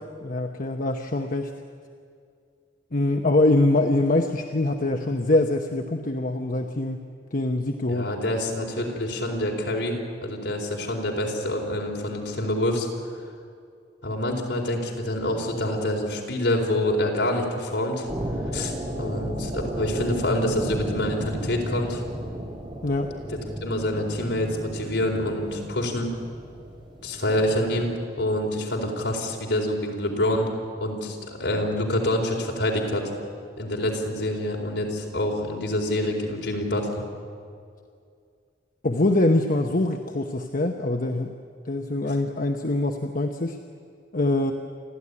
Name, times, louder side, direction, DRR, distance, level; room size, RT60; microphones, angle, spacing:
voice 1, 0.2-1.5 2.9-7.0 7.3-8.1 22.8-23.1 38.8-41.3 41.7-43.6 44.1-44.5, left 2 dB, 50° left, 4 dB, 1.0 m, -24 dB
voice 2, 7.9-10.0 10.2-12.9 14.0-18.1 18.5-18.7 19.0-22.0 23.6-26.1 27.0-27.9 28.2-30.5 30.8-33.1 33.6-37.0, left 1 dB, 70° left, 0 dB, 4.4 m, -26 dB
sound 1, 18.0-28.0, right 1 dB, 30° right, 3.7 m, -33 dB
29.5 x 13.0 x 9.8 m, 2.3 s
head